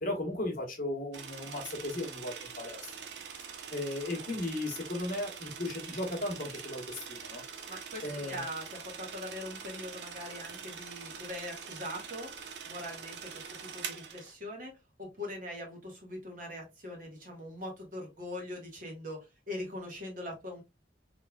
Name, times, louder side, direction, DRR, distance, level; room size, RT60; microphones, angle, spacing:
voice 1, 0.0-2.9 3.7-7.4 8.0-8.5, left 1 dB, 50° left, 1.1 m, -36 dB
sound 1, 1.1-14.3, right 6 dB, 70° right, 0.6 m, -44 dB
voice 2, 7.7-12.3 12.7-13.4 13.7-14.7 15.0-20.6, left 1 dB, 50° right, 1.4 m, -42 dB
3.5 x 3.2 x 2.2 m
head